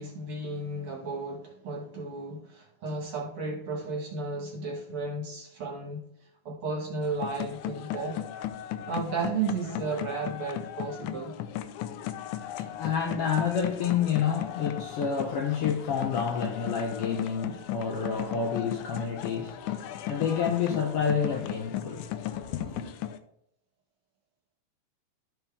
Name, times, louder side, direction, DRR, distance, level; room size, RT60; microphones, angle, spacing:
voice 1, 0.0-6.0 6.5-8.2 8.9-11.3, right 4 dB, 50° right, 2.2 m, -34 dB
sound 1, 7.0-23.2, left 11 dB, 90° left, 2.1 m, -36 dB
voice 2, 12.6-22.9, left 7 dB, 70° left, 1.4 m, -29 dB
13.0 x 4.6 x 3.5 m
omnidirectional pair, 3.4 m